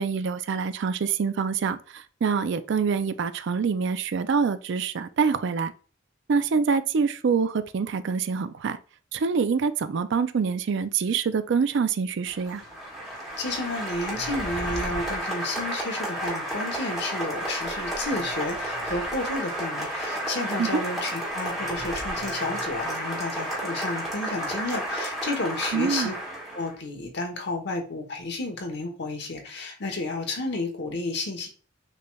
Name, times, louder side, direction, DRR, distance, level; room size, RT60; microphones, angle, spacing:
voice 1, 0.0-5.7 6.3-8.8 9.1-12.6 20.6-20.8 25.7-26.1, right 5 dB, 60° right, 0.4 m, -25 dB
Applause, 12.3-26.7, right 1 dB, ahead, 1.6 m, -32 dB
sound 1, 13.0-13.2 13.9-15.2 16.4-16.5 17.6-19.4 21.5-23.0, equal, 80° right, 1.9 m, -41 dB
voice 2, 13.4-26.1 26.5-31.5, left 2 dB, 55° left, 1.1 m, -31 dB
6.6 x 3.2 x 2.3 m
head